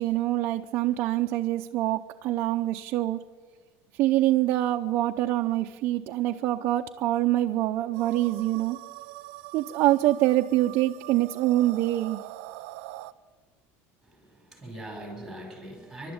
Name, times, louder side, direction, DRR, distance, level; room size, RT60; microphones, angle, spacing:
voice 1, 0.0-3.2 4.0-8.8 9.5-12.2, right 15 dB, 40° right, 3 dB, 0.7 m, -25 dB
sound 1, 7.9-13.1, right 16 dB, 90° right, 0.7 m, -43 dB
voice 2, 14.0-16.1, right 1 dB, ahead, 2 dB, 5.4 m, -41 dB
30.0 x 12.0 x 8.8 m, 1.4 s
cardioid pair, 175°, 7 cm